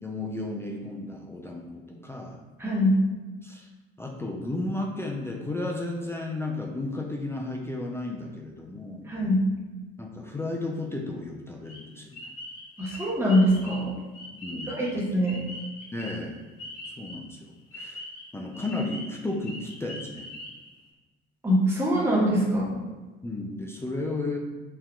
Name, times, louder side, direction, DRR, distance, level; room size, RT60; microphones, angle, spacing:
voice 1, 0.0-2.4 3.4-3.7 4.0-9.1 10.0-12.3 14.4-15.0 15.9-16.4 16.9-18.0 18.3-20.2 23.2-24.4, left 2 dB, 10° left, 0 dB, 0.4 m, -33 dB
voice 2, 2.6-2.9 9.1-9.4 12.8-13.9 14.7-15.4 21.4-22.8, equal, 10° right, -5 dB, 1.0 m, -23 dB
sound 1, 11.7-17.3 17.7-20.9, left 1 dB, 70° left, 1.2 m, -42 dB
3.6 x 2.7 x 2.4 m, 1.2 s
figure-of-eight pair, 55°, 30 cm